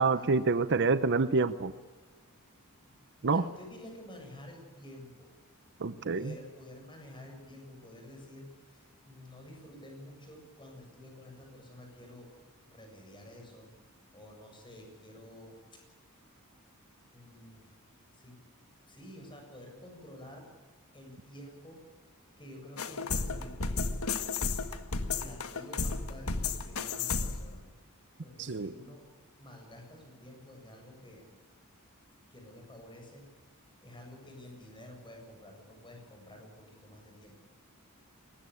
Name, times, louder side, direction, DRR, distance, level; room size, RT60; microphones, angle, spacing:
voice 1, 0.0-1.7 3.2-3.4 5.8-6.3 28.4-28.7, right 4 dB, 55° right, 13 dB, 0.7 m, -27 dB
voice 2, 2.8-5.3 6.1-12.3 12.7-13.7 14.1-15.6 17.0-17.7 18.1-18.4 18.9-20.5 20.9-21.8 22.4-24.0 25.1-27.6 28.2-29.1 29.4-31.3 32.3-33.3 33.8-37.3, left 1 dB, 20° left, 3 dB, 7.4 m, -50 dB
sound 1, 22.8-27.5, left 4 dB, 75° left, 1.7 m, -33 dB
22.0 x 19.5 x 8.5 m, 1.3 s
head